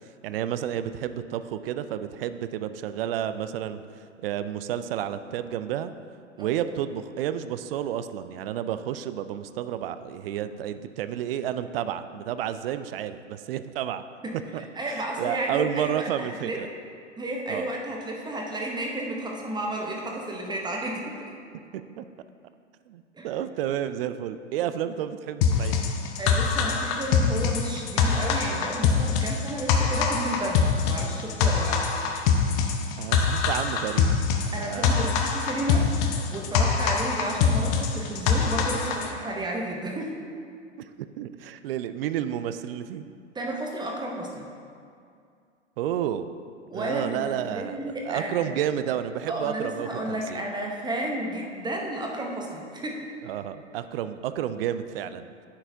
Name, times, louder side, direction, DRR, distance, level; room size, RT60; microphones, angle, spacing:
voice 1, 0.2-3.8 4.2-5.9 6.4-14.0 14.5-14.6 14.9-16.7 17.5-17.7 21.7-22.0 22.9-25.8 33.0-35.2 40.8-40.9 41.2-43.0 45.8-46.3 46.7-50.4 53.2-55.3, right 10 dB, 55° right, 12 dB, 0.4 m, -31 dB
voice 2, 14.6-16.6 17.2-21.2 23.1-23.3 26.2-31.8 34.5-40.2 43.3-44.5 46.7-48.5 49.3-53.0, right 1 dB, 10° right, -1 dB, 0.7 m, -32 dB
sound 1, 25.4-39.1, left 6 dB, 40° left, 0.7 m, -24 dB
9.8 x 6.0 x 2.6 m, 2.3 s
figure-of-eight pair, 95°, 36 cm